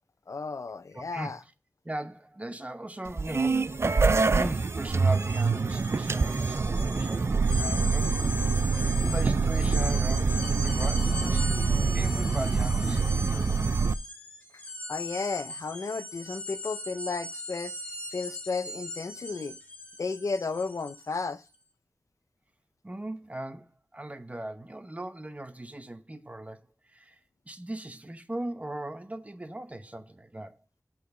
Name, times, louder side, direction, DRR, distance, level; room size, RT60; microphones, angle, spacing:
voice 1, 0.3-1.4 8.8-8.9 14.9-17.7 18.1-19.6 20.0-21.4, left 4 dB, 70° left, 0.5 m, -33 dB
voice 2, 0.9-1.3 1.8-3.9 4.3-8.1 9.0-11.5 11.9-13.7 22.8-27.2 27.5-30.6, right 1 dB, 25° right, 0.9 m, -39 dB
sound 1, 3.1-13.9, right 4 dB, 50° right, 0.4 m, -25 dB
sound 2, 3.6-3.8 4.1-21.3, left 1 dB, 25° left, 2.3 m, -40 dB
8.3 x 4.1 x 6.6 m
wide cardioid pair, 60°, 6 cm